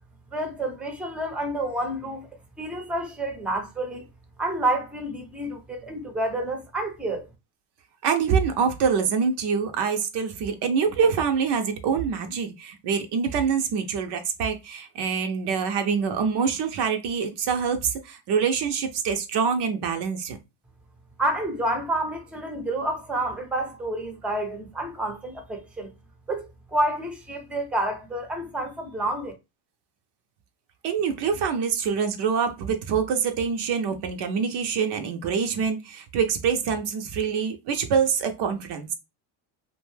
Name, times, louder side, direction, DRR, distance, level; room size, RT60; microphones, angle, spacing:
voice 1, 0.3-2.3 2.6-4.1 4.4-7.2 21.2-25.9 26.3-29.3, right 1 dB, ahead, 0.6 m, -29 dB
voice 2, 8.0-20.4 30.8-38.9, right 6 dB, 55° right, 0.6 m, -25 dB
2.5 x 2.2 x 3.2 m
supercardioid pair, 100°, 50 cm